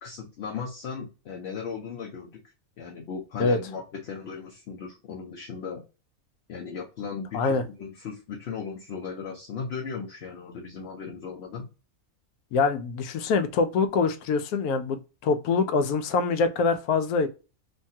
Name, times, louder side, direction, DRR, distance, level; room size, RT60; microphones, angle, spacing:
voice 1, 0.0-2.4 2.8-5.8 6.5-11.7, left 5 dB, 60° left, 0.7 m, -37 dB
voice 2, 12.5-17.3, left 4 dB, 85° left, 1.1 m, -24 dB
3.2 x 2.3 x 2.7 m
omnidirectional pair, 1.5 m